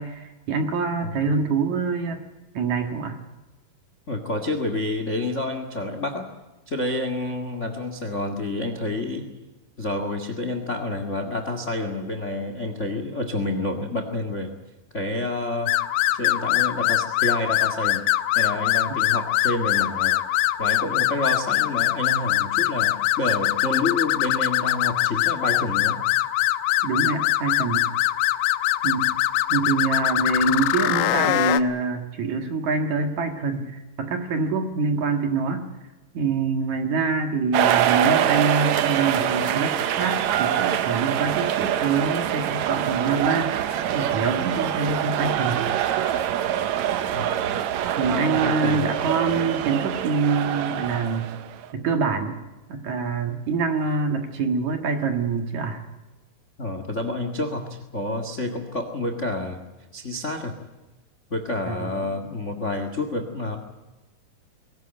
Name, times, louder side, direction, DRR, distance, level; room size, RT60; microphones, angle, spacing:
voice 1, 0.0-2.2 2.5-3.2 26.8-27.9 28.8-29.1 29.5-35.7 36.1-43.5 43.9-45.7 48.0-51.3 51.7-52.4 52.7-55.8 61.7-61.9, right 4 dB, 55° right, 6 dB, 2.7 m, -25 dB
voice 2, 1.0-1.3 4.1-6.3 6.7-9.3 9.8-14.5 14.9-15.7 16.1-18.0 18.3-20.1 20.6-26.0 47.1-47.6 48.0-48.9 56.6-59.6 59.9-60.5 61.3-63.6, left 2 dB, 65° left, 7 dB, 0.7 m, -29 dB
sound 1, 15.7-31.6, left 15 dB, 85° left, 3.0 m, -23 dB
sound 2, 37.5-51.7, right 10 dB, 85° right, 1.6 m, -24 dB
22.0 x 18.0 x 9.0 m, 1.1 s
omnidirectional pair, 4.7 m